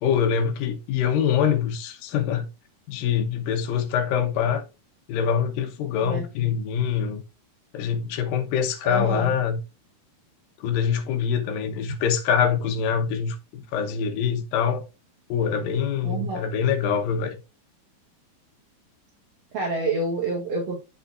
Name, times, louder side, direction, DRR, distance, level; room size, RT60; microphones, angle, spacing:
voice 1, 0.0-2.5 2.9-4.6 5.1-7.2 7.7-9.6 10.6-14.9 15.3-17.4, left 7 dB, 75° left, 2.7 m, -24 dB
voice 2, 8.8-9.3 16.0-16.5 19.5-20.8, right 3 dB, 50° right, 2.6 m, -28 dB
8.6 x 6.9 x 2.5 m
omnidirectional pair, 4.3 m